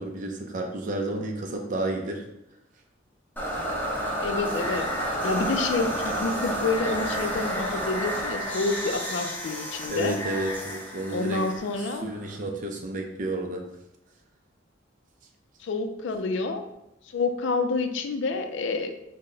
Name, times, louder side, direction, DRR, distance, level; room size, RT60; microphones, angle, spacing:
voice 1, 0.0-2.2 9.9-11.4 12.0-13.6, right 1 dB, 45° right, 2 dB, 0.4 m, -31 dB
sound 1, 3.4-12.4, equal, 10° left, 0.7 m, -31 dB
voice 2, 4.2-4.9 5.2-10.2 11.1-12.1 15.6-16.6 17.1-18.9, left 3 dB, 70° left, 7 dB, 0.4 m, -28 dB
3.9 x 2.1 x 3.7 m, 0.83 s
head